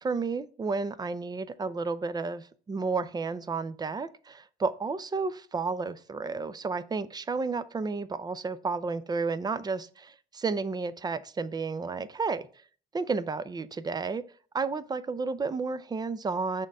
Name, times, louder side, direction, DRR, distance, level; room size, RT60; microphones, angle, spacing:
voice 1, 0.0-12.5 12.9-14.2 14.5-16.7, right 4 dB, 25° right, 0.5 m, -32 dB
6.4 x 3.7 x 5.3 m
cardioid pair, 110°, 17 cm